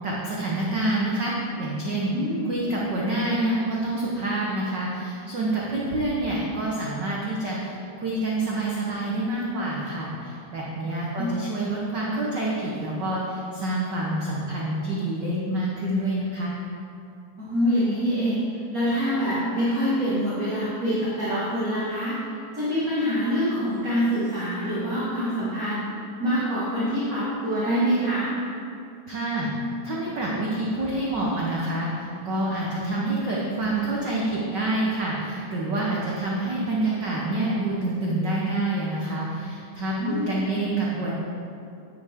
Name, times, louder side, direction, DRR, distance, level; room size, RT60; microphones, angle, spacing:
voice 1, 0.0-2.2 2.4-16.5 29.1-29.5 29.8-41.1, right 1 dB, 60° right, -5 dB, 1.1 m, -27 dB
voice 2, 2.1-2.5 10.8-11.3 17.4-18.4 18.7-22.1 22.5-25.9 26.2-28.3 40.0-40.3, equal, 30° right, -10 dB, 2.0 m, -25 dB
10.5 x 9.8 x 3.6 m, 2.6 s
omnidirectional pair, 3.6 m